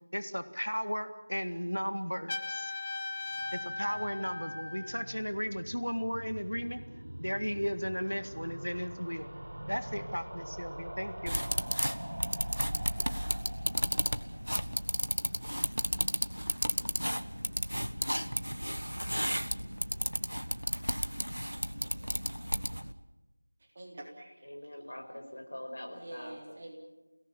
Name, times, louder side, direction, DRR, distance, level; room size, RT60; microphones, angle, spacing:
voice 1, 0.1-2.7 3.5-6.8 7.2-9.3 9.7-11.4 11.9-12.0, equal, 85° left, 10 dB, 1.9 m, -35 dB
Trumpet, 2.3-5.1, left 3 dB, 25° left, 1.4 m, -38 dB
sound 1, 3.1-16.2 16.5-16.6 16.8-16.9 17.1-17.2, right 1 dB, 60° right, 1.2 m, -44 dB
sound 2, 11.3-22.9, equal, 80° right, 1.5 m, -33 dB
voice 2, 23.7-24.5 25.9-26.7, right 1 dB, 25° right, 0 dB, 3.6 m, -46 dB
voice 3, 24.4-26.6, left 1 dB, 55° left, 3 dB, 5.3 m, -44 dB
29.5 x 18.5 x 7.2 m, 1.1 s
figure-of-eight pair, 170°, 0 cm